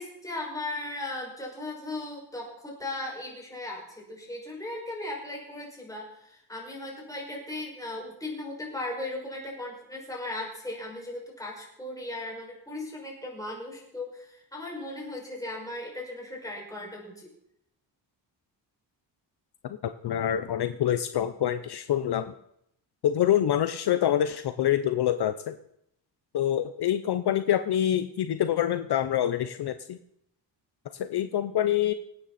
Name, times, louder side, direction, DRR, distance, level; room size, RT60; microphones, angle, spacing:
voice 1, 0.0-17.3, left 2 dB, 10° left, -3 dB, 5.7 m, -37 dB
voice 2, 19.6-22.3 23.0-25.5 26.3-30.0 30.9-31.9, left 11 dB, 60° left, 10 dB, 0.8 m, -26 dB
25.5 x 9.2 x 4.2 m, 0.74 s
cardioid pair, 130°, 44 cm